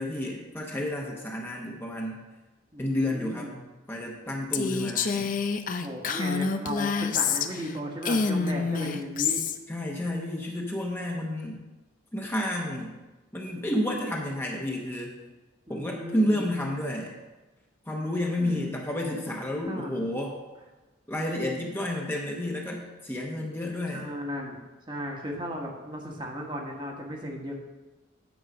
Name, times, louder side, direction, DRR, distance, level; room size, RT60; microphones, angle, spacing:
voice 1, 0.0-2.2 2.8-3.5 3.9-5.3 9.7-11.6 12.1-12.9 13.3-15.1 15.7-17.1 17.9-20.4 21.1-24.1, left 1 dB, 10° left, -1 dB, 0.9 m, -30 dB
voice 2, 2.7-3.7 5.8-9.4 15.7-16.5 18.4-18.7 19.7-19.9 23.9-24.6 24.9-27.5, equal, 25° right, 0 dB, 1.2 m, -36 dB
Female speech woman speaking, 4.5-7.7 8.0-9.6, left 5 dB, 45° left, 0.5 m, -27 dB
9.3 x 4.8 x 6.0 m, 1.1 s
head